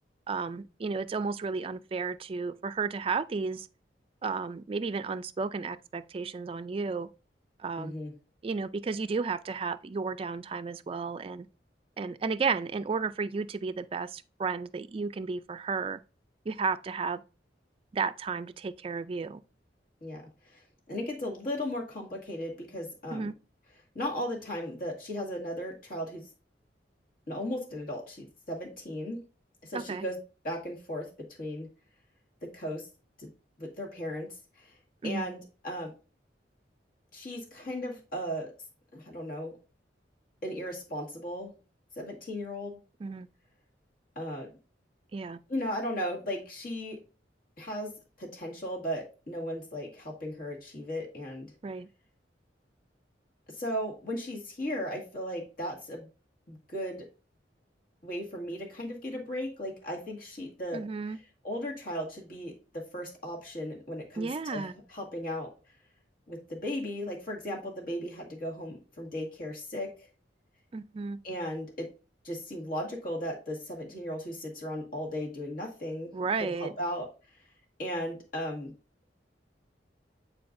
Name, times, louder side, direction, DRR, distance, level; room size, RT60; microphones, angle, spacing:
voice 1, 0.3-3.7 4.2-7.1 7.6-7.9 8.4-11.5 12.0-16.0 16.5-17.2 17.9-19.4 23.1-23.3 29.7-30.0 35.0-35.3 43.0-43.3 45.1-45.4 51.6-51.9 60.7-61.2 64.2-64.7 70.7-71.2 76.1-76.7, right 4 dB, 30° right, 0.3 m, -33 dB
voice 2, 7.8-8.1 20.0-23.3 24.0-26.2 27.3-29.2 29.6-30.2 30.4-31.1 31.4-31.7 32.4-32.9 33.2-33.3 33.6-34.7 35.0-35.9 37.1-38.5 38.9-39.6 40.4-41.5 42.0-42.8 44.2-44.5 45.5-47.0 47.6-47.9 48.2-51.5 53.5-56.1 56.5-57.1 58.0-60.8 61.4-65.5 66.3-70.1 71.2-71.9 72.2-77.1 77.8-78.7, equal, 50° left, 1.8 m, -36 dB
8.6 x 4.5 x 2.6 m
head